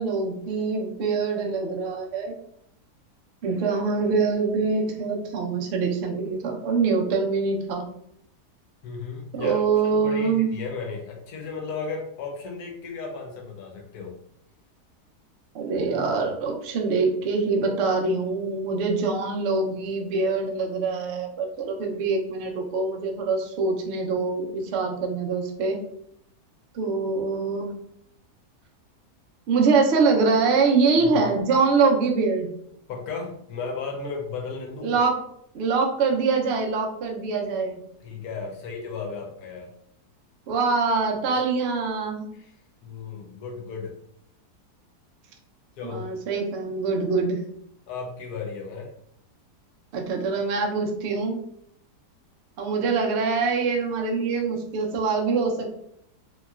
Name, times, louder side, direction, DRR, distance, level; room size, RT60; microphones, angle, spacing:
voice 1, 0.0-2.3 3.4-7.8 9.3-10.5 15.5-25.8 26.7-27.7 29.5-32.5 34.8-35.1 35.5-37.8 40.5-42.3 45.8-47.4 49.9-51.4 52.6-55.8, right 4 dB, 85° right, 1 dB, 0.5 m, -24 dB
voice 2, 8.8-14.1 31.0-31.3 32.9-35.0 38.0-39.7 42.3-42.5 42.8-43.9 45.8-46.1 47.9-48.9, left 4 dB, 75° left, 1 dB, 1.1 m, -35 dB
3.0 x 2.8 x 2.3 m, 0.71 s
omnidirectional pair, 1.8 m